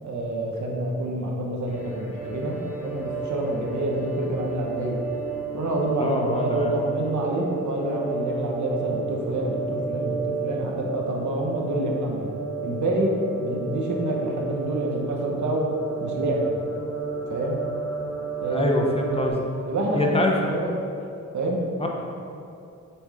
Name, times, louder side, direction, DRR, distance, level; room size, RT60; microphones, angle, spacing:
voice 1, 0.0-5.0 5.5-12.3 12.6-13.1 13.4-15.7 16.0-16.5 17.3-17.7 18.4-18.7 19.6-20.7 21.3-21.9, right 1 dB, 70° right, -1 dB, 1.2 m, -27 dB
sound 1, 1.7-19.3, right 3 dB, 85° left, 1.2 m, -32 dB
voice 2, 6.0-6.7 18.5-19.4 19.9-20.5 21.8-21.9, left 1 dB, 20° left, 0 dB, 0.9 m, -24 dB
7.1 x 3.5 x 4.9 m, 2.5 s
cardioid pair, 90°, 30 cm